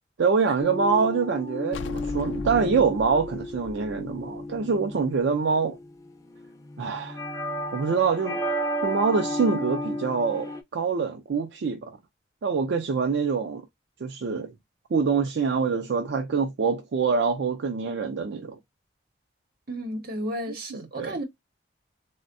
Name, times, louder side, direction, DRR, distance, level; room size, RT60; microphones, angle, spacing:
voice 1, 0.2-5.8 6.8-7.2 7.7-8.4 8.8-12.0 12.4-13.6 14.0-14.5 14.9-18.6 20.7-21.1, right 5 dB, 70° right, 0.4 m, -25 dB
sound 1, 0.6-10.6, equal, 15° left, 0.4 m, -33 dB
sound 2, 1.7-5.2, left 2 dB, 80° left, 0.4 m, -39 dB
voice 2, 19.7-21.2, equal, 55° right, 0.9 m, -33 dB
3.4 x 2.1 x 2.5 m
head